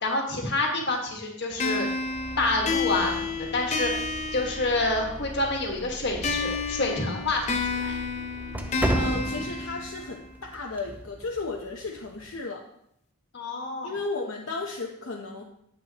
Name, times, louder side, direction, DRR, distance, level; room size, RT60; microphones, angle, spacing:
voice 1, 0.0-1.9 2.4-4.1 4.3-8.0 13.3-14.0, left 2 dB, 50° left, 1 dB, 1.6 m, -28 dB
sound 1, 1.5-12.4, right 1 dB, 5° right, 0.3 m, -37 dB
sound 2, 1.6-5.2 6.2-10.2, left 4 dB, 30° left, 0.6 m, -31 dB
sound 3, 2.1-9.5, equal, 15° left, 1.1 m, -43 dB
voice 2, 8.9-12.7 13.8-15.4, left 3 dB, 70° left, 0 dB, 0.8 m, -34 dB
8.9 x 8.1 x 2.9 m, 0.75 s
head